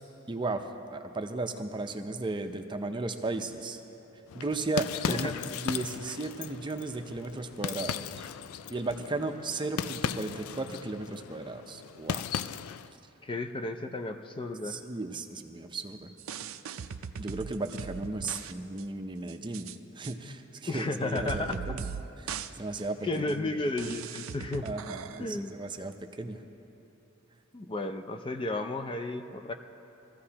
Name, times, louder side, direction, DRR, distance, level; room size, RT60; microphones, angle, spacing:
voice 1, 0.3-3.8 4.3-8.2 8.7-12.3 14.6-16.1 17.2-19.7 20.0-21.9 22.2-23.0 23.3-23.7 24.6-26.4, right 2 dB, 25° right, 6 dB, 0.6 m, -35 dB
sound 1, 4.3-12.9, left 8 dB, 90° left, 0.3 m, -37 dB
voice 2, 13.2-14.8 20.7-21.6 23.0-24.7 25.2-25.5 27.5-29.5, left 2 dB, 25° left, 6 dB, 0.4 m, -33 dB
sound 2, 16.2-18.5 18.8-18.9 19.3-19.7 20.0-20.1 20.8-20.9 21.1-22.0 22.3-22.5 22.8-22.9 23.3-23.4 23.8-25.2, right 7 dB, 70° right, 0.4 m, -39 dB
21.5 x 14.0 x 2.9 m, 3.0 s
head